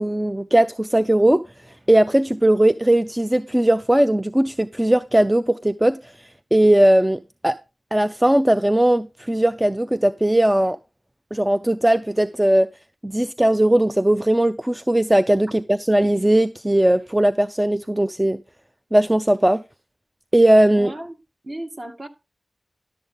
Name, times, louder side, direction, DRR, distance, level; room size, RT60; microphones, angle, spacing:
voice 1, 0.0-1.4 1.9-6.0 6.5-7.6 7.9-10.8 11.3-12.7 13.0-18.4 18.9-19.6 20.3-20.9, right 1 dB, 10° right, 0.5 m, -18 dB
voice 2, 20.7-21.2 21.4-22.1, right 1 dB, 40° right, 1.9 m, -34 dB
12.0 x 7.2 x 3.8 m
wide cardioid pair, 80°, 0 cm